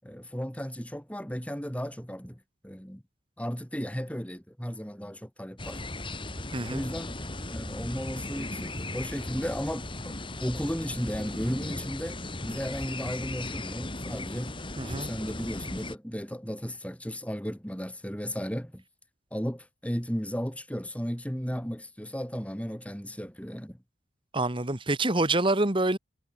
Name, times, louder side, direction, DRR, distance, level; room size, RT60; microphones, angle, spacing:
voice 1, 0.0-3.0 3.4-5.8 6.6-7.2 7.5-10.1 10.4-14.6 14.9-18.8 19.3-23.8, equal, 10° left, 7.6 m, -35 dB
sound 1, 5.6-16.0, left 2 dB, 30° left, 3.9 m, -37 dB
voice 2, 6.5-6.9 14.8-15.1 24.3-26.0, right 2 dB, 30° right, 1.8 m, -26 dB
head